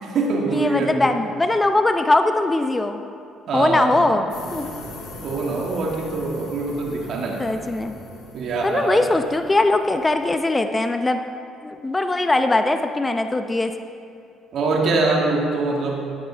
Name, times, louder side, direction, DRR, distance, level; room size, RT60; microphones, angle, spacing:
voice 1, 0.0-1.0 3.5-4.1 5.2-7.4 8.3-9.0 14.5-16.1, right 3 dB, 60° right, -1 dB, 2.0 m, -23 dB
voice 2, 0.5-3.0 3.5-4.7 7.4-7.9 8.6-11.2 11.6-13.7, left 2 dB, 20° left, 7 dB, 0.6 m, -21 dB
sound 1, 4.3-10.4, left 2 dB, 75° left, 3.0 m, -40 dB
13.0 x 10.5 x 3.4 m, 2.4 s
supercardioid pair, 70°, 0 cm